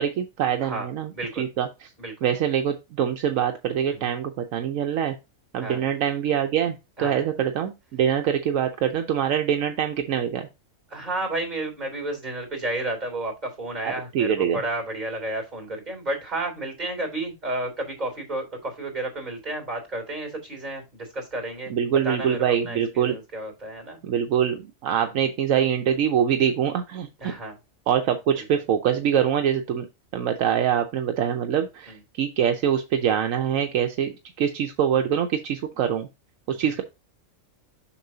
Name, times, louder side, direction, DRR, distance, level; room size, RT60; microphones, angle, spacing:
voice 1, 0.0-1.1 1.4-1.7 2.2-5.2 5.5-10.5 13.8-14.6 21.7-23.2 24.0-27.1 27.9-29.9 30.1-34.1 34.4-36.1 36.5-36.8, right 9 dB, 75° right, 5 dB, 1.1 m, -24 dB
voice 2, 1.1-1.5 2.0-2.1 3.9-4.1 5.6-5.9 7.0-7.3 10.9-24.0 25.1-25.2 27.2-27.6 28.4-28.5 31.9-32.0 36.5-36.8, right 2 dB, 30° right, 3 dB, 3.3 m, -32 dB
7.1 x 6.0 x 2.7 m, 0.25 s
omnidirectional pair, 1.4 m